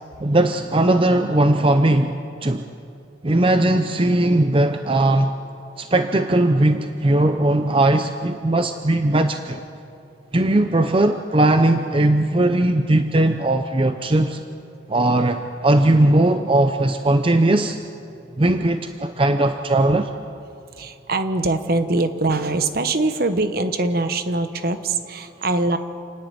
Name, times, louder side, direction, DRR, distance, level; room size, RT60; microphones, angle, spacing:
voice 1, 0.2-2.1 2.4-2.7 3.2-5.3 5.8-9.6 10.3-14.4 14.9-17.8 18.4-20.1, right 1 dB, 30° right, 7 dB, 0.6 m, -18 dB
voice 2, 20.8-25.8, right 2 dB, 50° right, 9 dB, 1.1 m, -22 dB
29.0 x 10.5 x 9.5 m, 2.6 s
head